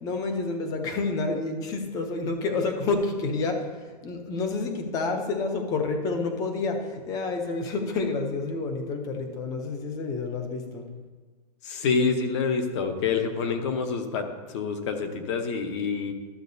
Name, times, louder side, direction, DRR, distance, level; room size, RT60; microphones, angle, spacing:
voice 1, 0.0-3.6 4.0-10.8, left 3 dB, 15° left, 5 dB, 0.6 m, -29 dB
voice 2, 11.6-16.1, left 5 dB, 45° left, 6 dB, 0.9 m, -27 dB
12.5 x 7.5 x 2.7 m, 1.4 s
supercardioid pair, 170°, 21 cm